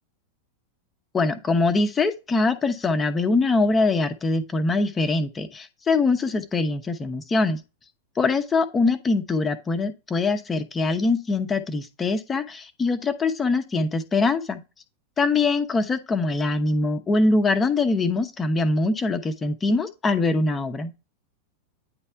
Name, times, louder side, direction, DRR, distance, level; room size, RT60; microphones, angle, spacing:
voice 1, 1.1-7.6 8.2-14.6 15.2-20.9, left 3 dB, 20° left, 0.9 m, -23 dB
9.7 x 3.3 x 4.4 m
figure-of-eight pair, 90°, 0 cm